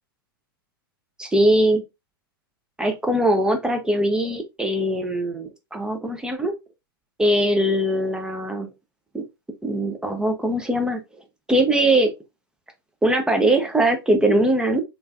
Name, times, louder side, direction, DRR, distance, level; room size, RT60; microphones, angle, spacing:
voice 1, 1.2-1.8 2.8-6.5 7.2-8.7 9.1-9.2 9.6-11.0 11.5-12.1 13.0-14.8, right 1 dB, 5° right, 0.4 m, -21 dB
3.0 x 2.2 x 2.3 m
hypercardioid pair, 110°, 12 cm